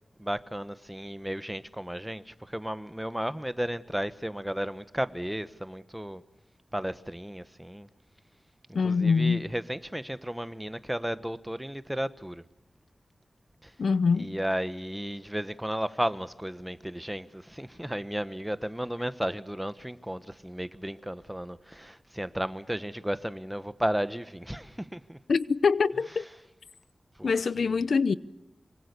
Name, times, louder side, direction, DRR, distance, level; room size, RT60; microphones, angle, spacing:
voice 1, 0.2-6.2 6.7-7.9 8.8-12.4 13.6-13.7 14.2-25.2 27.2-27.9, equal, 5° right, 1.1 m, -34 dB
voice 2, 8.7-9.4 13.8-14.3 25.3-26.2 27.2-28.2, left 5 dB, 85° left, 0.8 m, -24 dB
25.5 x 24.0 x 6.8 m
wide cardioid pair, 95°, 0 cm